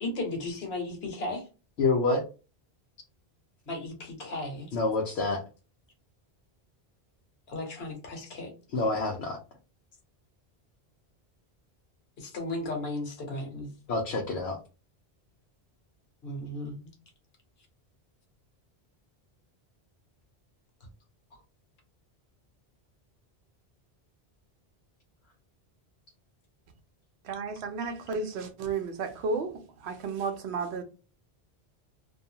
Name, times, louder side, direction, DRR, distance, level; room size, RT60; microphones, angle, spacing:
voice 1, 0.0-1.5 3.7-4.7 7.5-8.5 12.2-13.7 16.2-16.9, left 2 dB, 70° left, 1.2 m, -35 dB
voice 2, 1.8-2.2 4.7-5.4 8.7-9.4 13.9-14.6, left 3 dB, 90° left, 0.9 m, -27 dB
voice 3, 27.2-30.8, right 4 dB, 80° right, 0.9 m, -33 dB
2.6 x 2.3 x 2.7 m
omnidirectional pair, 1.1 m